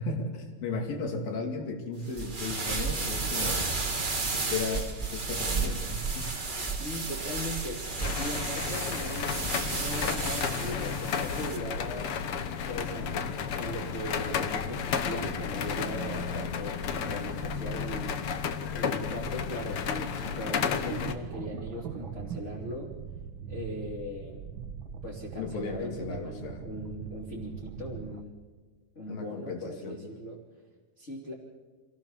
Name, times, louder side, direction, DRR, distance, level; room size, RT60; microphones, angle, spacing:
voice 1, 0.0-3.6 4.3-6.3 25.3-26.6 29.1-30.0, left 3 dB, 80° left, 4 dB, 4.4 m, -35 dB
sound 1, 2.1-11.6, right 4 dB, 30° right, 0.8 m, -32 dB
voice 2, 6.7-9.4 9.7-12.2 12.7-18.2 18.7-22.9 23.5-24.4 25.0-28.3 28.9-30.4 31.0-31.3, left 1 dB, 20° left, -4 dB, 2.8 m, -39 dB
sound 2, 8.0-21.1, left 6 dB, 65° left, 1.4 m, -32 dB
sound 3, 20.9-28.2, right 7 dB, 75° right, 1.1 m, -41 dB
25.5 x 17.0 x 7.3 m, 1.4 s
omnidirectional pair, 4.1 m